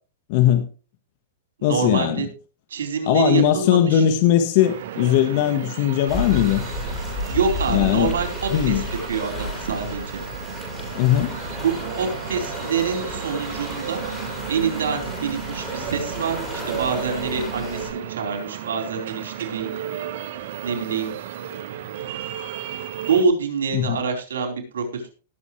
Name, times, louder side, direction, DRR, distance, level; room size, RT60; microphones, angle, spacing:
voice 1, 0.3-0.7 1.6-2.2 3.1-6.6 7.7-8.1 8.5-8.8 11.0-11.3 23.7-24.0, left 11 dB, 50° left, 1.3 m, -19 dB
voice 2, 1.6-2.3 2.7-4.0 7.3-8.8 9.1-10.2 11.6-14.0 14.5-19.7 20.2-20.4 20.6-21.1 23.0-25.1, right 5 dB, 85° right, 4.1 m, -26 dB
sound 1, 4.6-23.2, right 10 dB, 65° right, 1.3 m, -34 dB
sound 2, 6.1-17.9, left 1 dB, 15° left, 5.9 m, -32 dB
19.0 x 7.2 x 3.2 m
hypercardioid pair, 140°, 0 cm